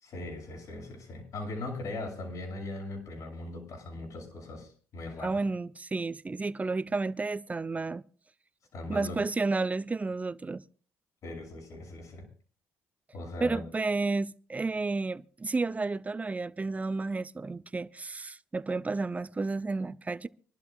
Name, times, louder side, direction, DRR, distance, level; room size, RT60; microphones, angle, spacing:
voice 1, 0.0-5.4 8.7-9.2 11.2-12.2 13.1-13.7, left 2 dB, 60° left, 6.3 m, -39 dB
voice 2, 5.2-8.0 8.9-10.6 13.4-20.3, right 3 dB, 20° right, 0.5 m, -31 dB
25.5 x 12.0 x 2.4 m
hypercardioid pair, 60°, 7 cm